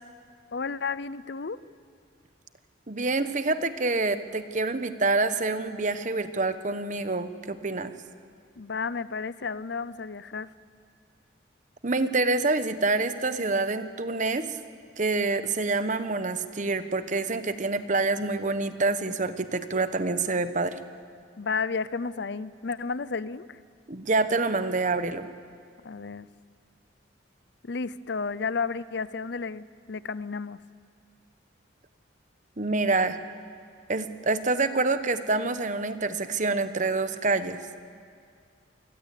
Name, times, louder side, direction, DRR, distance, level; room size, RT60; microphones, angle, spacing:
voice 1, 0.5-1.6 8.6-10.5 21.4-23.6 25.8-26.3 27.6-30.6, left 4 dB, 60° left, 17 dB, 0.6 m, -32 dB
voice 2, 2.9-7.9 11.8-14.6 15.0-20.8 23.9-25.3 32.6-33.2 33.9-37.6, right 3 dB, 40° right, 11 dB, 1.1 m, -27 dB
27.5 x 20.5 x 8.4 m, 2.2 s
head